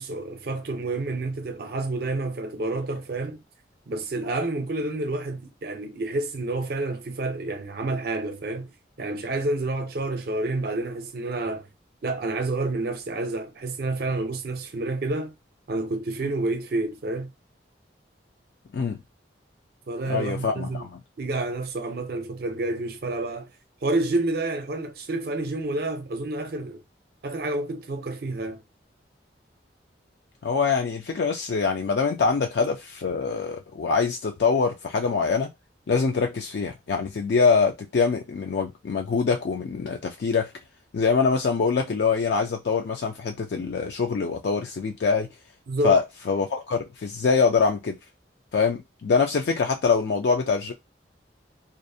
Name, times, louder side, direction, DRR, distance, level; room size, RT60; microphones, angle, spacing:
voice 1, 0.0-3.4 3.9-8.7 9.0-11.7 12.0-15.3 15.7-17.3 19.9-20.9 21.2-23.5 23.8-26.8 27.2-28.6 45.7-46.0, right 2 dB, 55° right, 0.5 m, -29 dB
voice 2, 20.1-20.9 30.4-35.5 35.9-40.5 40.9-45.3 45.8-48.0 48.5-50.7, left 5 dB, 65° left, 0.4 m, -24 dB
2.5 x 2.0 x 2.5 m
head